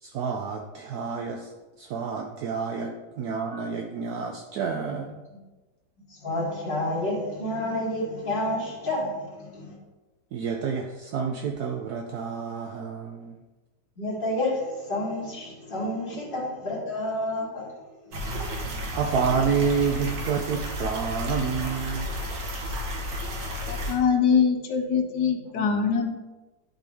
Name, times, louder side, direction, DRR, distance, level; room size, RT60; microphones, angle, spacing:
voice 1, 0.0-1.5 1.8-5.1 10.3-13.4 16.1-16.3 18.9-22.2 25.4-25.6, right 6 dB, 70° right, 3 dB, 1.0 m, -29 dB
voice 2, 6.2-9.8 14.0-17.7 18.2-18.3, left 1 dB, 30° left, -7 dB, 2.6 m, -29 dB
sound 1, 18.1-23.9, equal, 90° right, 2.0 m, -32 dB
voice 3, 23.7-26.2, left 6 dB, 75° left, 5 dB, 1.4 m, -23 dB
11.5 x 4.4 x 3.5 m, 1.2 s
omnidirectional pair, 1.9 m